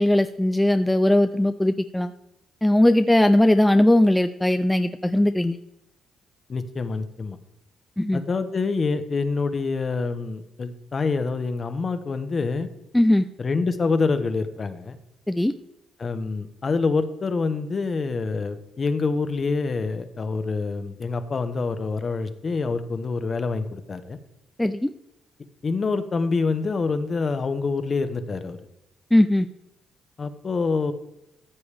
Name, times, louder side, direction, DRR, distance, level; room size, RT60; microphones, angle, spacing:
voice 1, 0.0-2.1 2.6-5.6 8.0-8.2 12.9-13.3 15.3-15.5 24.6-24.9 29.1-29.5, left 1 dB, 5° left, 8 dB, 0.4 m, -19 dB
voice 2, 6.5-7.4 8.1-12.7 13.4-15.0 16.0-24.2 25.6-28.6 30.2-30.9, left 4 dB, 40° left, 10 dB, 1.0 m, -26 dB
14.5 x 7.0 x 3.4 m, 0.86 s
cardioid pair, 85°, 0 cm